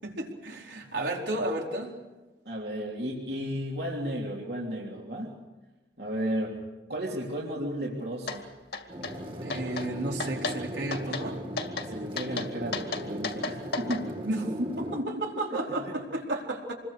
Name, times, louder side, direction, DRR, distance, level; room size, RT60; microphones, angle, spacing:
voice 1, 0.0-1.9 9.4-11.4 14.2-14.5 14.8-16.7, right 1 dB, 85° right, -1 dB, 4.5 m, -32 dB
voice 2, 2.4-5.3 6.0-6.6 6.9-8.5 11.9-14.4 14.9-15.4 15.7-15.9, equal, 65° right, -2 dB, 3.3 m, -34 dB
sound 1, 8.3-8.4 8.7-9.1 9.5-9.9 10.2-10.6 10.9-11.3 11.6-11.9 12.2-14.0, left 4 dB, 65° left, 2.2 m, -33 dB
sound 2, 8.9-15.0, equal, 30° right, 2.3 m, -38 dB
26.5 x 22.0 x 6.6 m, 1.1 s
head